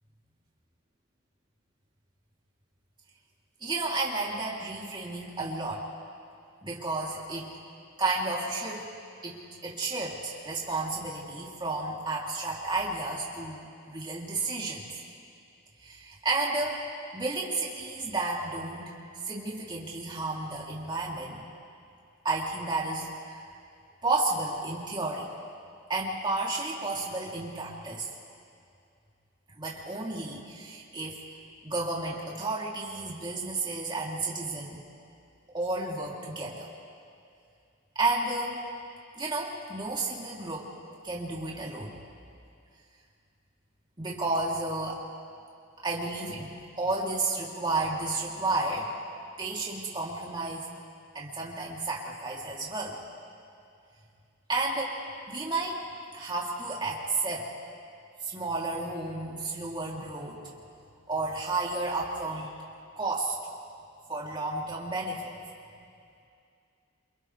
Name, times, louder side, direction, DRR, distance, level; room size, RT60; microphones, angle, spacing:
voice 1, 3.6-5.9 6.6-7.5 8.0-8.8 9.2-14.8 15.8-16.8 17.1-19.0 19.2-21.4 22.2-23.1 24.0-25.3 25.9-28.1 29.6-31.2 31.6-34.8 35.5-36.7 37.9-38.7 39.2-40.7 41.0-42.0 44.0-45.0 45.8-48.9 49.4-50.7 51.1-53.0 54.5-55.0 55.3-55.8 56.1-57.5 58.2-60.5 61.1-62.6 62.9-63.3 64.1-65.3, right 2 dB, 20° right, -4 dB, 3.2 m, -32 dB
28.5 x 28.0 x 3.4 m, 2.4 s
head